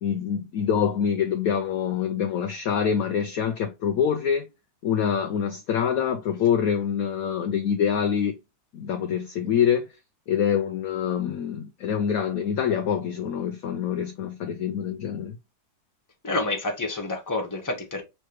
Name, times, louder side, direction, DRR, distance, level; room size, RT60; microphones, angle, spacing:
voice 1, 0.0-4.4 4.8-8.3 8.7-9.9 10.3-15.4, left 8 dB, 70° left, 0.9 m, -25 dB
voice 2, 16.2-18.0, left 2 dB, 10° left, 1.1 m, -28 dB
5.5 x 3.1 x 3.1 m
omnidirectional pair, 2.0 m